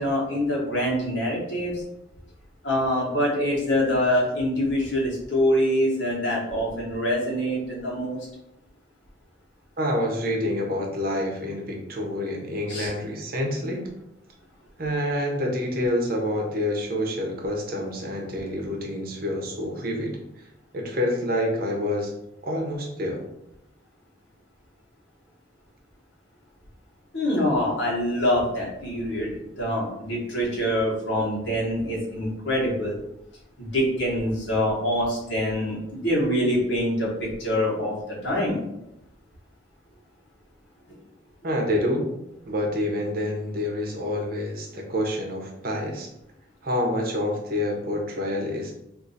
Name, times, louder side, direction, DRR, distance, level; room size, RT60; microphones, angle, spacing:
voice 1, 0.0-1.8 2.6-8.2 12.7-12.9 27.1-33.0 33.6-38.0 38.2-38.6 40.9-41.0, equal, 75° left, -4 dB, 1.2 m, -25 dB
voice 2, 9.8-13.9 14.8-20.5 20.7-22.1 22.4-23.2 41.4-42.1 42.5-46.1 46.6-48.7, left 1 dB, 55° right, 1 dB, 0.7 m, -27 dB
2.6 x 2.5 x 3.9 m, 0.84 s
head